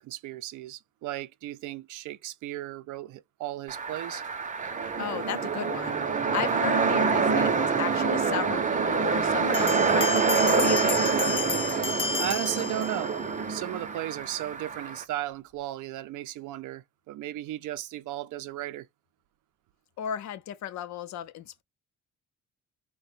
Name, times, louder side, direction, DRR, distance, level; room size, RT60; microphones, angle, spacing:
voice 1, 0.0-4.2 12.2-13.2 13.5-18.9, right 14 dB, 80° right, 0.5 m, -35 dB
sound 1, 3.7-15.0, right 5 dB, 25° right, 0.6 m, -26 dB
voice 2, 5.0-6.0 6.3-11.0 20.0-21.6, left 10 dB, 65° left, 0.6 m, -35 dB
Bell, 9.5-13.3, left 5 dB, 20° left, 0.3 m, -32 dB
2.7 x 2.2 x 4.1 m
cardioid pair, 90°, 30 cm